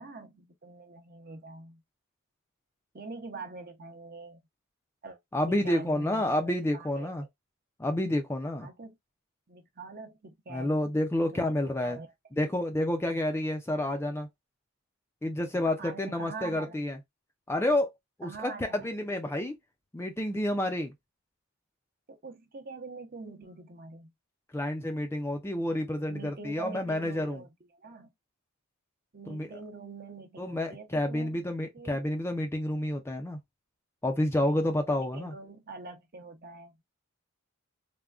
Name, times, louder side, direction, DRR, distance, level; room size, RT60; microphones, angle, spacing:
voice 1, 0.0-1.8 2.9-4.4 5.0-7.1 8.6-8.9 9.5-10.8 11.3-11.5 11.8-12.1 15.8-16.8 18.2-18.9 22.1-24.1 26.1-28.1 29.1-31.4 31.7-32.0 34.4-36.8, right 3 dB, 40° right, 0.7 m, -45 dB
voice 2, 5.3-7.2 7.8-8.7 10.5-12.0 12.4-14.3 15.2-17.0 17.5-17.9 18.2-19.6 19.9-20.9 24.5-27.4 29.3-29.5 30.4-33.4 34.0-35.3, left 1 dB, 10° left, 0.4 m, -29 dB
3.5 x 2.2 x 2.4 m
head